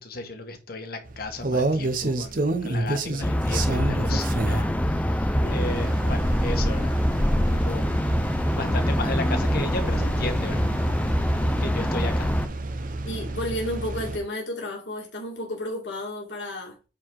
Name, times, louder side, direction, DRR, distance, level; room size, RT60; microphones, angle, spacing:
voice 1, 0.0-2.4 2.6-6.9 7.2-7.9 8.5-10.6 11.6-12.3, left 2 dB, 55° left, 1.5 m, -35 dB
sound 1, 1.1-14.2, right 2 dB, 50° right, 0.9 m, -30 dB
sound 2, 3.2-12.5, equal, 10° left, 0.5 m, -24 dB
voice 2, 13.0-16.8, left 1 dB, 70° left, 2.3 m, -32 dB
8.9 x 4.0 x 4.8 m
head